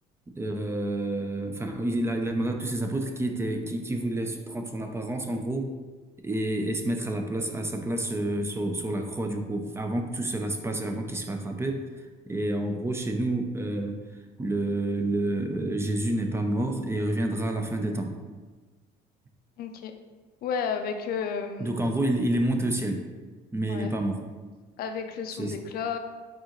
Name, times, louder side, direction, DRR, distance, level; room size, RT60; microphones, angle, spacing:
voice 1, 0.3-5.7 6.2-18.1 21.6-23.0 23.5-24.2 25.3-25.6, right 1 dB, 15° right, 4 dB, 0.4 m, -29 dB
voice 2, 19.6-20.0 20.4-21.7 23.7-23.9 24.8-26.0, left 6 dB, 65° left, 6 dB, 0.5 m, -32 dB
4.7 x 3.7 x 3.0 m, 1.3 s
cardioid pair, 110°, 17 cm